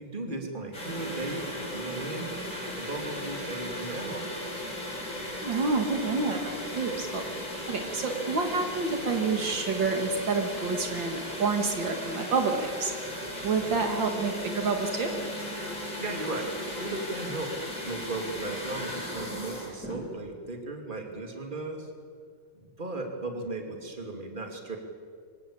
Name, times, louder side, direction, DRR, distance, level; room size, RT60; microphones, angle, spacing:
voice 1, 0.0-2.3 2.8-4.4 16.0-17.5 17.8-21.9 22.5-24.8, right 2 dB, 25° right, 3 dB, 3.0 m, -36 dB
sound 1, 0.7-20.1, left 1 dB, 45° left, 7.1 m, -37 dB
voice 2, 5.4-12.9 13.4-15.1, right 4 dB, 70° right, 4 dB, 2.6 m, -29 dB
Bass guitar, 13.8-17.5, equal, 55° right, 5.3 m, -42 dB
25.0 x 17.0 x 8.8 m, 2.1 s
omnidirectional pair, 2.1 m